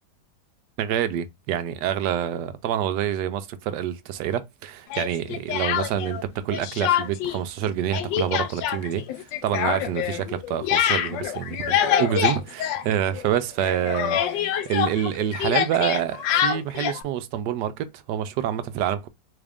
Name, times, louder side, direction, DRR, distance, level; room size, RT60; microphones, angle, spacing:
voice 1, 0.8-19.1, right 10 dB, 75° right, 1.2 m, -27 dB
Speech, 4.9-6.2 6.5-7.4 7.6-13.3 13.6-17.0, left 10 dB, 90° left, 1.3 m, -25 dB
3.9 x 2.4 x 3.4 m
omnidirectional pair, 1.9 m